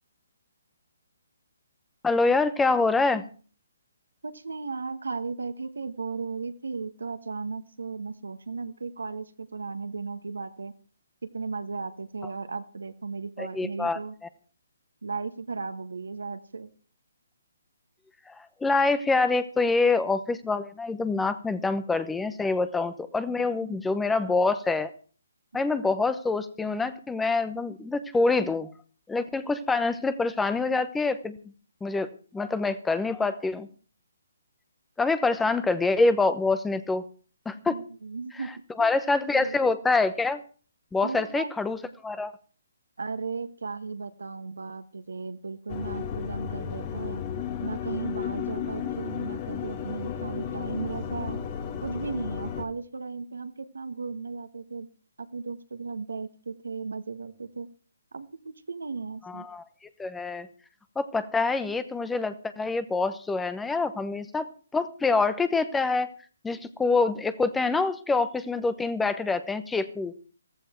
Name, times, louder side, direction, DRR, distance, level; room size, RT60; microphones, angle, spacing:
voice 1, 2.0-3.2 13.4-14.0 18.3-18.4 18.6-24.9 25.5-28.7 29.1-31.4 31.8-33.7 35.0-37.0 37.5-37.8 38.8-40.4 40.9-41.8 42.0-42.3 59.2-59.6 60.0-60.5 61.0-64.5 64.7-66.1 66.4-70.1, left 3 dB, 5° left, 12 dB, 0.9 m, -26 dB
voice 2, 4.2-10.7 11.2-14.1 15.0-16.7 23.6-24.1 25.5-25.6 35.4-35.6 37.7-38.5 38.8-39.1 39.3-39.6 41.0-41.5 43.0-47.2 47.6-51.4 51.8-54.9 55.2-57.7 58.1-59.5, right 4 dB, 75° right, 10 dB, 1.5 m, -36 dB
sound 1, 45.7-52.6, left 8 dB, 30° left, 1.7 m, -33 dB
15.5 x 14.5 x 4.5 m, 0.40 s
figure-of-eight pair, 140°, 0 cm